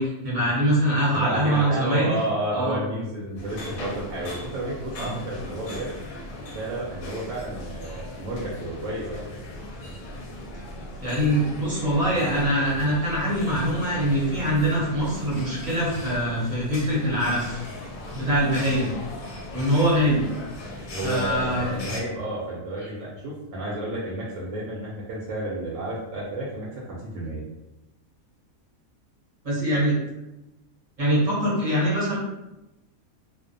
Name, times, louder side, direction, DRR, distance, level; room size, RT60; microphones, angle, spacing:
voice 1, 0.0-2.2 2.5-2.8 4.9-5.2 11.0-17.6 18.1-18.9 19.5-20.3 21.0-21.7 29.4-29.9 31.0-32.2, equal, 40° right, -7 dB, 0.8 m, -23 dB
voice 2, 1.1-5.9 6.5-9.2 20.9-27.4, right 1 dB, 70° right, -5 dB, 0.9 m, -31 dB
sound 1, 3.4-22.0, left 1 dB, 80° left, 1.0 m, -38 dB
2.5 x 2.1 x 2.6 m, 0.95 s
omnidirectional pair, 1.5 m